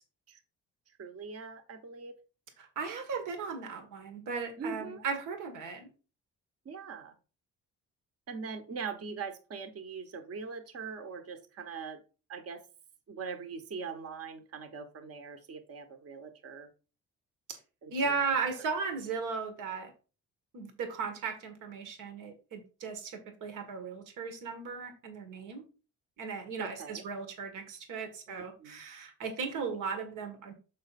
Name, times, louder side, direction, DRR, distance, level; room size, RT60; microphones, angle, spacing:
voice 1, 1.0-2.1 4.6-5.0 6.6-7.1 8.3-12.0 12.3-12.6 13.1-16.7 17.8-18.4 26.6-27.0 28.3-28.8 29.5-29.8, right 5 dB, 50° right, 7 dB, 1.1 m, -42 dB
voice 2, 2.6-5.9 17.5-17.6 17.9-19.9 20.5-25.6 26.2-30.5, right 5 dB, 90° right, 5 dB, 1.6 m, -36 dB
6.3 x 5.4 x 4.1 m, 0.35 s
cardioid pair, 90°, 30 cm